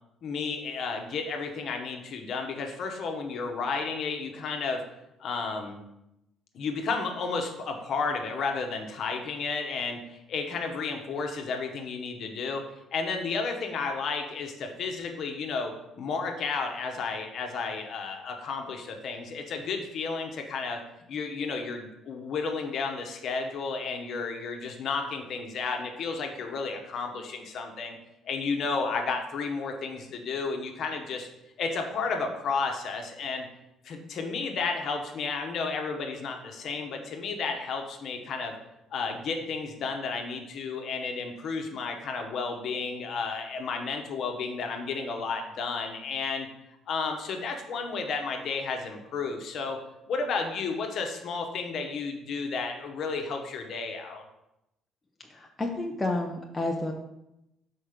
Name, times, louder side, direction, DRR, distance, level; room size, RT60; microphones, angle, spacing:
voice 1, 0.2-4.8 5.2-5.8 6.5-12.6 12.9-20.8 21.1-28.0 28.2-31.3 31.6-33.5 33.8-38.5 38.9-46.5 46.9-49.8 50.1-54.2, left 4 dB, 45° left, 3 dB, 1.0 m, -32 dB
voice 2, 55.3-56.9, left 2 dB, 10° left, 0 dB, 0.5 m, -30 dB
6.2 x 4.6 x 5.0 m, 0.87 s
cardioid pair, 175°, 0 cm